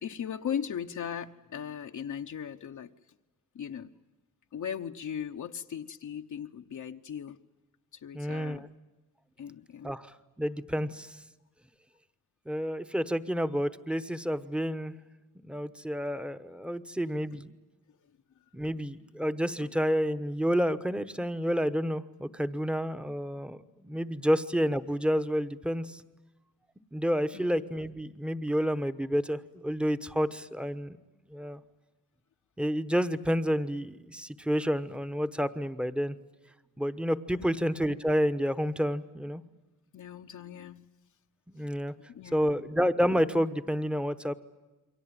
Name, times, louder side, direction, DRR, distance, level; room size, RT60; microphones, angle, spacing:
voice 1, 0.0-2.9 3.5-3.9 4.5-7.4 7.9-8.7 9.4-9.9 17.3-17.4 17.9-18.0 18.6-18.8 19.6-19.7 27.3-27.6 37.3-37.6 39.9-40.9 42.1-42.6, left 8 dB, 65° left, 5 dB, 0.9 m, -38 dB
voice 2, 8.1-8.7 9.8-11.2 12.5-14.9 15.4-17.5 18.5-26.0 26.9-31.0 31.3-31.6 32.6-36.1 36.8-39.4 41.5-41.9 42.3-44.3, equal, 5° right, 10 dB, 1.0 m, -29 dB
28.5 x 23.5 x 8.8 m, 1.1 s
wide cardioid pair, 140°, 33 cm